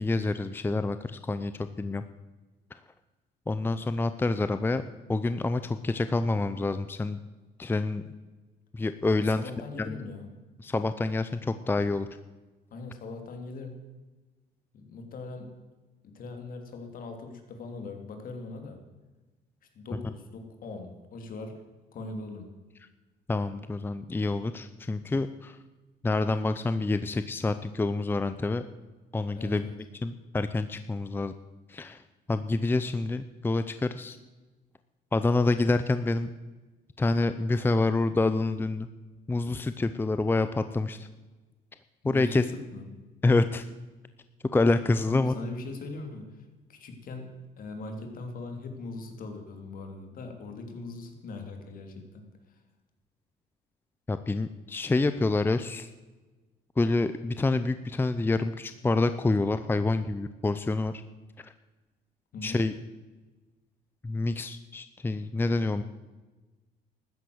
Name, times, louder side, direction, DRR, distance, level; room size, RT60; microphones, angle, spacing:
voice 1, 0.0-2.0 3.5-4.8 5.1-7.2 7.6-8.0 8.7-9.4 9.8-10.0 10.6-12.1 23.3-25.6 26.0-28.6 29.1-29.7 30.0-31.3 31.7-32.0 32.3-34.2 35.1-36.3 37.0-38.9 39.3-41.1 42.0-42.4 43.2-43.6 44.5-45.3 54.1-55.9 56.8-60.9 61.4-61.5 62.4-62.7 64.0-65.8, left 2 dB, 10° left, 11 dB, 0.6 m, -27 dB
voice 2, 9.3-10.3 12.7-13.8 14.7-15.5 16.0-18.8 19.7-21.6 21.9-22.5 29.4-29.8 42.0-42.9 45.1-46.4 46.7-52.2 62.3-62.6, left 3 dB, 55° left, 5 dB, 3.0 m, -40 dB
13.0 x 10.0 x 7.9 m, 1.2 s
cardioid pair, 110°, 17 cm